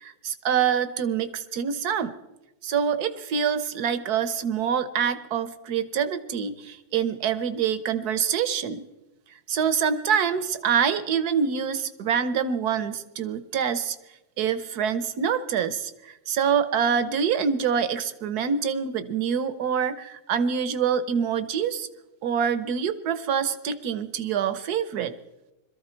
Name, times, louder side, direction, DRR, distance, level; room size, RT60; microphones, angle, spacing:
voice 1, 0.0-2.1 2.6-8.8 9.5-14.0 14.4-21.9 22.2-25.1, right 7 dB, 60° right, 13 dB, 1.2 m, -26 dB
22.0 x 13.5 x 4.4 m, 0.97 s
omnidirectional pair, 2.1 m